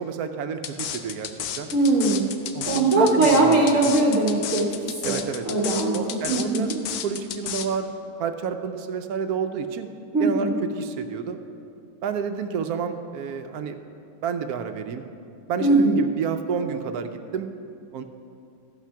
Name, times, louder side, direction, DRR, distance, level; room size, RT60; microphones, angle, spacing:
voice 1, 0.0-1.7 2.5-3.8 5.0-5.5 5.9-7.9 8.2-9.9 10.2-10.5 10.7-11.4 12.0-13.8 14.2-15.1 15.5-17.5 17.9-18.0, right 6 dB, 80° right, 8 dB, 1.1 m, -30 dB
sound 1, 0.6-7.7, left 9 dB, 85° left, 1.2 m, -32 dB
voice 2, 1.7-2.3 2.6-6.7 10.1-10.6 15.6-16.0, right 2 dB, 60° right, -2 dB, 1.3 m, -21 dB
14.0 x 5.9 x 5.7 m, 2.6 s
omnidirectional pair, 1.6 m